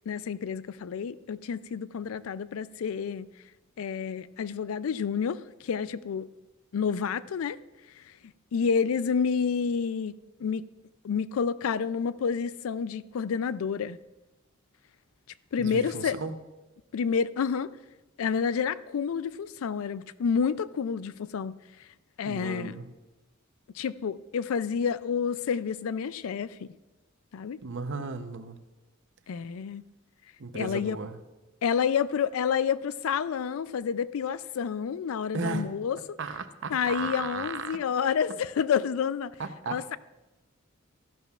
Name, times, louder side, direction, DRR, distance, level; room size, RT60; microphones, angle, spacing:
voice 1, 0.1-3.3 3.8-6.3 6.7-7.6 8.0-8.1 8.5-10.1 10.4-10.6 11.0-14.0 15.5-16.2 16.9-17.7 18.2-21.9 22.2-22.7 23.7-26.7 27.3-27.6 29.3-29.8 30.5-31.0 31.6-36.0 36.7-39.3 39.7-40.0, left 6 dB, 75° left, 0.4 m, -29 dB
voice 2, 15.6-16.3 22.2-22.9 27.6-28.6 30.4-31.2 35.3-35.7 36.2-37.8 39.4-40.0, right 4 dB, 60° right, 0.7 m, -35 dB
13.5 x 11.0 x 2.4 m
head